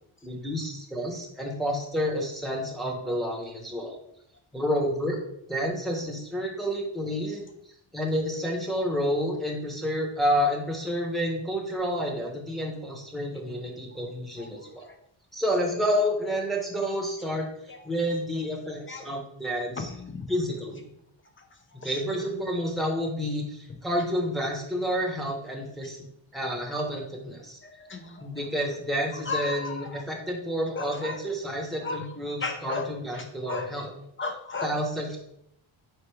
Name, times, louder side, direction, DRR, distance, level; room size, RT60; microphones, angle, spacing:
voice 1, 0.2-4.0 4.5-5.2 5.5-7.4 7.9-14.8 15.3-17.5 17.8-19.9 20.3-20.9 21.7-26.0 26.3-27.6 28.2-33.9 34.6-35.2, equal, ahead, -1 dB, 0.9 m, -29 dB
voice 2, 19.8-20.3 21.4-21.5 21.8-22.0 27.6-28.3 29.3-30.0 30.8-31.2 31.8-32.0 32.4-32.9 33.1-33.7 34.2-34.7, left 4 dB, 25° left, 5 dB, 0.5 m, -34 dB
4.4 x 2.3 x 4.8 m, 0.74 s
wide cardioid pair, 115°, 49 cm